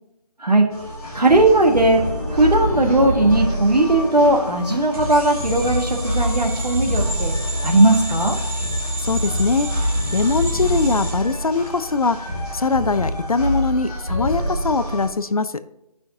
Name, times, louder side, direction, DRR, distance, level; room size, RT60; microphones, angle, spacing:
sound 1, 0.7-15.1, equal, 5° right, 1.7 m, -27 dB
voice 1, 1.1-7.3 7.6-8.4, right 2 dB, 90° right, 2 dB, 1.6 m, -17 dB
sound 2, 1.5-8.4, left 2 dB, 20° left, 3.0 m, -35 dB
sound 3, 4.9-12.0, equal, 60° right, 2.3 m, -28 dB
voice 2, 9.0-15.5, left 4 dB, 65° left, 12 dB, 0.6 m, -22 dB
12.0 x 5.7 x 2.7 m, 0.88 s
figure-of-eight pair, 175°, 20 cm